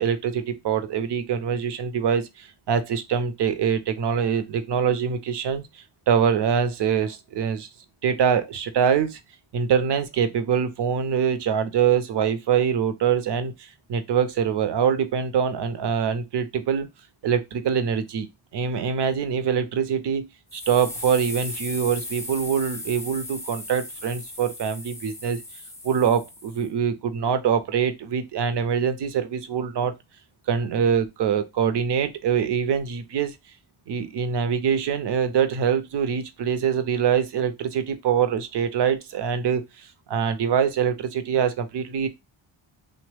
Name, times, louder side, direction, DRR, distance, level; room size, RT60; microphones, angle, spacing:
voice 1, 0.0-7.7 8.0-9.2 9.5-16.9 17.2-18.3 18.5-25.4 25.8-29.9 30.5-33.4 33.9-42.1, right 7 dB, 60° right, 0.6 m, -24 dB
sound 1, 20.5-26.7, left 2 dB, 5° left, 0.4 m, -37 dB
3.0 x 2.1 x 3.2 m
wide cardioid pair, 105°, 48 cm